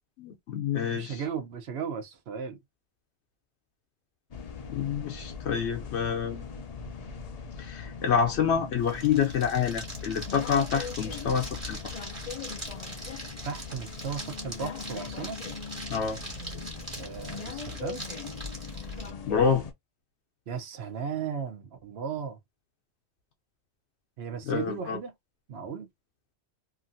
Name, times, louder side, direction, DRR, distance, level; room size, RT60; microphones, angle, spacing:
voice 1, 0.2-1.2 4.7-6.4 7.6-12.0 15.9-16.2 19.3-19.6 24.4-25.0, left 7 dB, 80° left, 0.9 m, -27 dB
voice 2, 0.9-2.6 13.4-15.4 17.0-18.0 20.5-22.4 24.2-25.1 25.5-25.9, right 6 dB, 70° right, 0.9 m, -36 dB
sound 1, 4.3-19.7, left 5 dB, 50° left, 0.5 m, -40 dB
sound 2, 8.8-19.1, right 1 dB, 30° right, 1.5 m, -42 dB
2.8 x 2.5 x 2.5 m
omnidirectional pair, 1.1 m